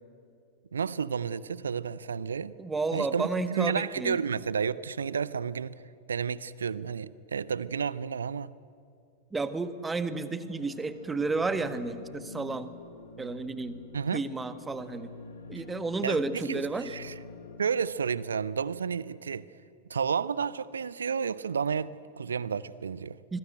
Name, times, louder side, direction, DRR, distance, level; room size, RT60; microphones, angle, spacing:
voice 1, 0.7-2.5 2.9-5.7 6.1-8.5 13.9-14.2 16.0-17.1 17.6-19.5 19.9-23.2, right 6 dB, 70° right, 0.6 m, -31 dB
voice 2, 2.6-4.2 9.3-12.7 13.2-13.8 14.1-15.1 15.5-16.9 23.3-23.4, right 3 dB, 10° right, 1.5 m, -31 dB
sound 1, 10.5-17.6, left 3 dB, 70° left, 2.8 m, -46 dB
26.0 x 21.5 x 9.0 m
figure-of-eight pair, 90°, 0 cm